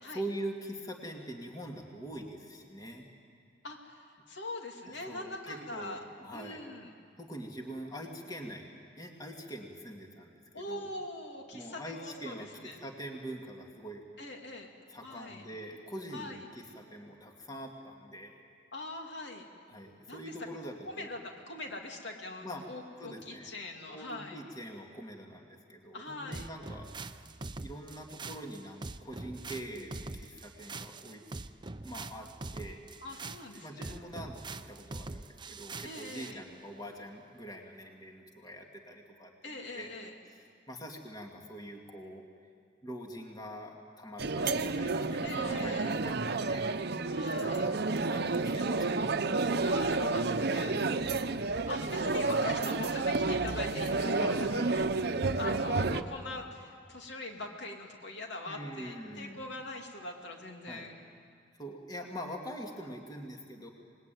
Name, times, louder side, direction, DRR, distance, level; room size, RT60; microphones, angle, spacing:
voice 1, 0.1-3.1 4.9-6.6 7.2-8.7 9.0-10.9 11.5-14.0 14.9-18.4 19.7-21.1 22.4-22.6 23.0-23.5 23.9-26.9 27.6-31.2 31.8-32.8 33.6-39.9 40.3-42.2 42.8-46.7 47.3-49.1 50.6-51.1 54.0-54.8 58.4-59.4 60.7-60.9 61.6-63.7, equal, 20° left, 1 dB, 2.4 m, -44 dB
voice 2, 3.6-6.0 6.3-6.9 10.5-12.8 14.2-14.7 15.0-15.4 16.1-16.4 18.7-19.5 20.1-20.3 20.9-24.4 25.9-26.5 33.0-33.9 35.8-36.4 39.4-40.1 45.2-46.0 47.1-47.7 49.7-51.3 51.7-54.4 54.7-54.9 55.3-61.0, left 2 dB, 70° left, 2 dB, 2.8 m, -42 dB
sound 1, 26.3-36.4, right 3 dB, 25° right, 0.7 m, -43 dB
sound 2, 44.2-56.0, right 3 dB, 60° right, 0.9 m, -30 dB
26.5 x 20.5 x 9.3 m, 2.2 s
head